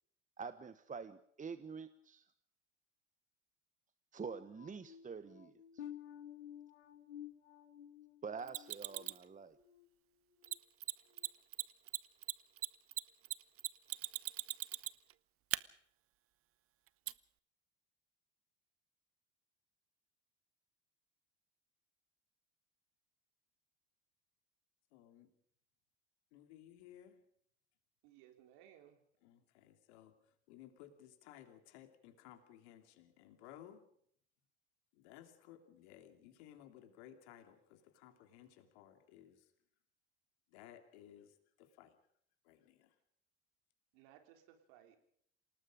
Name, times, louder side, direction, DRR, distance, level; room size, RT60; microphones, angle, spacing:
voice 1, 0.4-2.2 4.1-5.8 8.2-9.5, right 5 dB, 25° right, 12 dB, 1.3 m, -47 dB
sound 1, 4.2-9.9 10.3-10.6 11.1-11.3, left 10 dB, 85° left, 1.6 m, -53 dB
Mechanisms, 8.5-9.2 10.4-10.5 10.8-10.9 11.2-11.3 11.5-15.1 15.5-15.6 17.1-17.2, right 14 dB, 40° right, 0.8 m, -39 dB
voice 2, 24.9-25.3 26.3-27.2 29.2-30.2 30.5-33.8 34.9-39.5 40.5-41.9 42.4-42.9, left 11 dB, 70° left, 7 dB, 3.1 m, -58 dB
voice 3, 28.0-29.0 43.9-45.0, right 11 dB, 65° right, 5 dB, 3.9 m, -62 dB
27.5 x 18.5 x 5.2 m, 0.67 s
hypercardioid pair, 70°, 34 cm